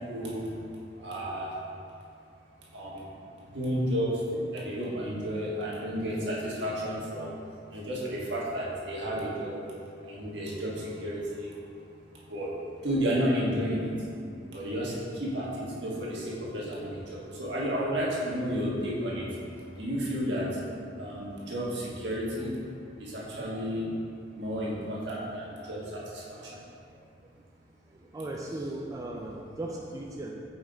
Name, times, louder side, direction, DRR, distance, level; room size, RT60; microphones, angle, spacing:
voice 1, 0.1-0.4 1.0-1.5 2.7-3.0 3.5-7.3 7.7-9.6 10.1-10.7 11.0-11.5 12.3-12.5 12.8-13.9 14.5-14.9 15.2-19.2 19.8-20.5 21.0-22.5 23.0-23.8 24.3-25.8, equal, 65° right, -6 dB, 1.5 m, -31 dB
voice 2, 27.9-30.3, right 1 dB, 20° right, -1 dB, 0.3 m, -38 dB
5.8 x 5.1 x 4.0 m, 2.5 s
head